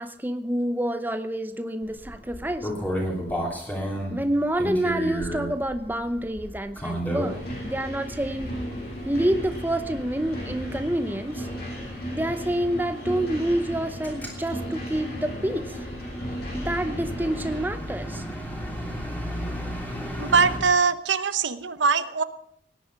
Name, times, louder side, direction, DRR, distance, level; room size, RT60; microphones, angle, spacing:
voice 1, 0.0-2.7 4.1-8.5 9.1-11.5 12.1-15.8 16.5-18.2, right 1 dB, 10° right, 9 dB, 0.7 m, -28 dB
sound 1, 1.8-7.6 8.1-8.7 9.0-20.6, equal, 10° left, 3.1 m, -34 dB
sound 2, 7.2-17.6, equal, 55° left, 6.5 m, -35 dB
voice 2, 20.2-22.2, right 5 dB, 80° right, 12 dB, 0.9 m, -22 dB
18.0 x 10.0 x 5.9 m, 0.72 s
head